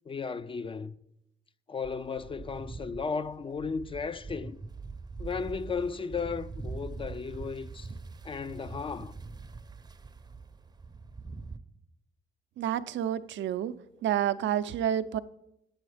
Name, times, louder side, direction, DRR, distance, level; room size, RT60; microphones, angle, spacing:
voice 1, 0.1-0.9 1.7-4.6 5.2-7.9 8.2-9.1, left 5 dB, 25° left, 0.4 m, -35 dB
sound 1, 1.8-11.6, right 4 dB, 20° right, 0.6 m, -43 dB
voice 2, 12.6-13.7 14.0-15.2, right 10 dB, 70° right, 0.5 m, -29 dB
8.5 x 7.9 x 4.9 m
cardioid pair, 90°, 20 cm